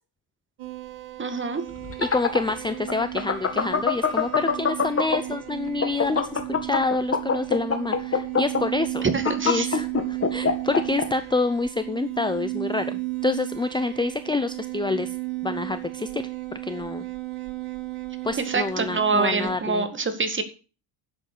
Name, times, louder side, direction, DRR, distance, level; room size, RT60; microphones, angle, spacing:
sound 1, 0.6-19.6, right 23 dB, 90° right, 2.6 m, -34 dB
voice 1, 1.2-1.6 9.1-9.7 18.4-20.4, right 4 dB, 25° right, 8 dB, 2.0 m, -25 dB
sound 2, 1.8-5.3 5.7-11.0, left 5 dB, 30° left, 2.1 m, -23 dB
voice 2, 2.0-9.1 9.4-15.1 15.4-16.2 16.5-17.1 18.2-19.9, left 3 dB, 10° left, 11 dB, 0.6 m, -27 dB
11.0 x 7.9 x 6.7 m, 0.34 s
cardioid pair, 125°, 48 cm